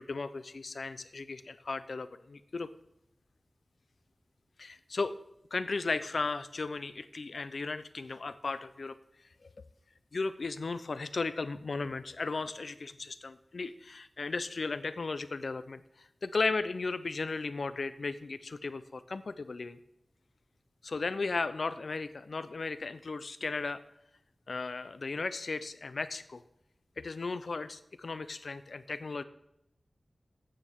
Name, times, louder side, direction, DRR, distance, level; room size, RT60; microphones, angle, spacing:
voice 1, 0.0-2.7 4.6-5.1 5.5-9.0 9.4-9.5 10.1-19.8 20.8-23.8 24.5-26.4 27.0-29.2, left 3 dB, 70° left, 13 dB, 0.6 m, -35 dB
14.5 x 8.8 x 3.7 m, 0.82 s
wide cardioid pair, 85°, 0 cm